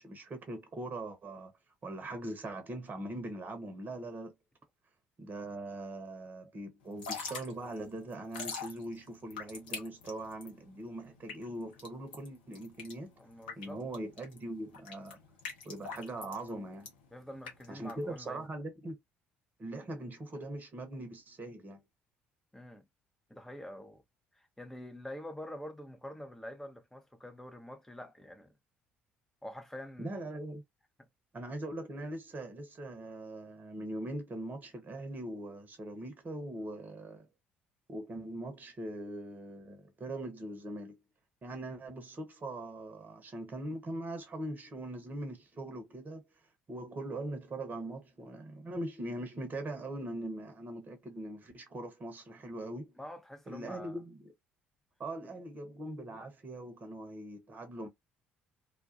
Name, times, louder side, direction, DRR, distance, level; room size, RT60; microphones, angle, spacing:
voice 1, 0.0-1.5 1.8-4.3 5.2-13.1 13.6-15.2 15.6-16.9 17.7-18.9 19.6-21.8 30.0-30.6 31.3-37.3 37.9-41.0 41.4-46.2 46.7-53.0 53.5-54.3 55.0-57.9, right 1 dB, 35° right, 0.9 m, -41 dB
Drip / Trickle dribble, 6.9-18.5, left 5 dB, 75° left, 0.7 m, -45 dB
voice 2, 13.2-13.8 17.1-18.5 22.5-22.9 23.3-24.0 24.3-28.5 29.4-30.2 53.0-54.0, left 1 dB, 5° left, 0.7 m, -46 dB
2.3 x 2.3 x 2.5 m
figure-of-eight pair, 50°, 5 cm